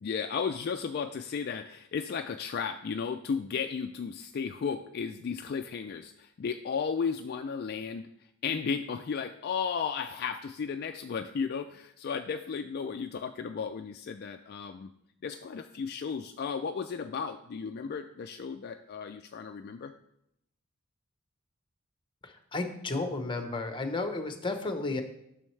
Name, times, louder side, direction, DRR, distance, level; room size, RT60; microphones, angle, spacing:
voice 1, 0.0-8.1 8.4-14.9 15.2-19.9, left 6 dB, 50° left, 6 dB, 0.3 m, -34 dB
voice 2, 22.2-25.0, left 3 dB, 25° left, 6 dB, 0.8 m, -33 dB
11.0 x 6.3 x 3.2 m, 0.77 s
head